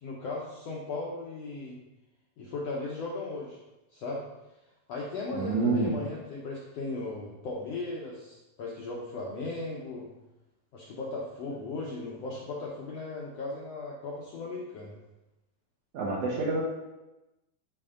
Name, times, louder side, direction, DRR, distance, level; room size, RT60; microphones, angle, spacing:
voice 1, 0.0-1.8 2.4-3.6 3.9-4.2 4.9-10.1 10.7-15.0, left 3 dB, 75° left, -3 dB, 1.5 m, -37 dB
voice 2, 5.4-5.9 15.9-16.6, right 3 dB, 70° right, -4 dB, 1.5 m, -27 dB
10.5 x 4.3 x 3.7 m, 0.98 s
omnidirectional pair, 4.2 m